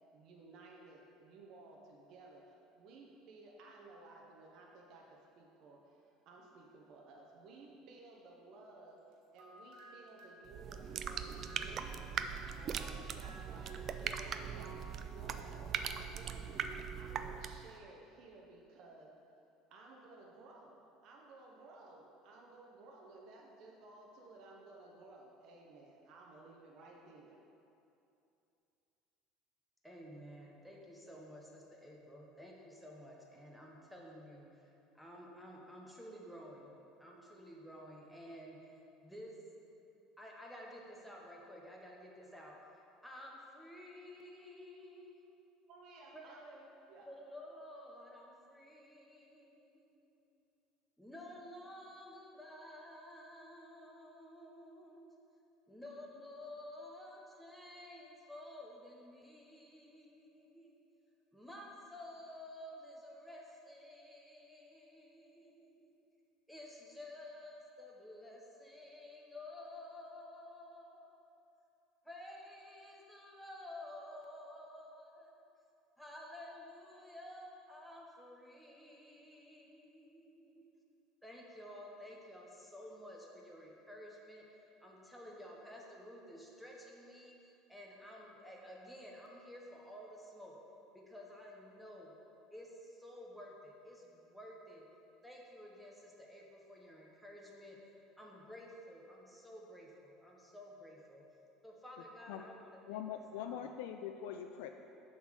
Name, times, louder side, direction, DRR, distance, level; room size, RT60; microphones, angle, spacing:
voice 1, 0.1-9.0 9.3-19.1 19.7-27.4 45.7-47.1 55.9-56.0, right 2 dB, 60° right, -1 dB, 0.9 m, -56 dB
sound 1, 9.0-14.8, right 1 dB, 75° right, 1.5 m, -58 dB
sound 2, 10.5-17.7, right 7 dB, 40° right, 0.3 m, -41 dB
voice 2, 29.8-39.3 40.2-42.6 43.0-45.2 46.1-46.3 47.1-50.1 51.0-55.1 55.7-60.8 61.3-65.9 66.5-71.1 72.0-75.4 76.0-80.7 81.2-87.4 87.7-90.6 90.9-92.1 92.5-94.9 95.2-97.9 98.2-101.2 101.6-103.0 103.4-103.7, left 1 dB, ahead, -2 dB, 1.0 m, -52 dB
voice 3, 102.9-104.7, left 9 dB, 85° left, 6 dB, 0.3 m, -43 dB
7.0 x 4.0 x 6.3 m, 2.7 s
supercardioid pair, 120°, 0 cm